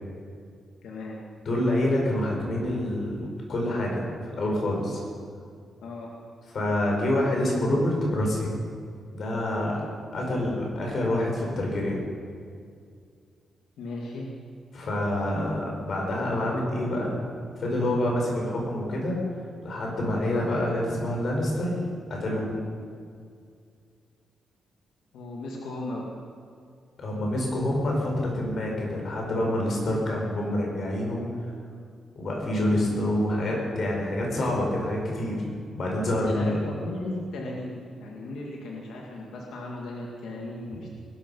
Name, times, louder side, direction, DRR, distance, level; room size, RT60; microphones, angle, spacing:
voice 1, 0.8-1.2 5.8-6.1 13.8-14.3 20.2-20.4 25.1-26.1 36.2-41.0, left 2 dB, 85° left, -2 dB, 2.1 m, -36 dB
voice 2, 1.4-5.0 6.5-8.5 9.1-9.8 10.1-12.0 14.7-17.2 17.6-19.2 19.6-22.6 27.0-31.2 32.1-35.4 35.7-36.6, left 1 dB, 50° left, -1 dB, 4.8 m, -27 dB
20.5 x 12.0 x 5.5 m, 2.2 s
wide cardioid pair, 145°, 0 cm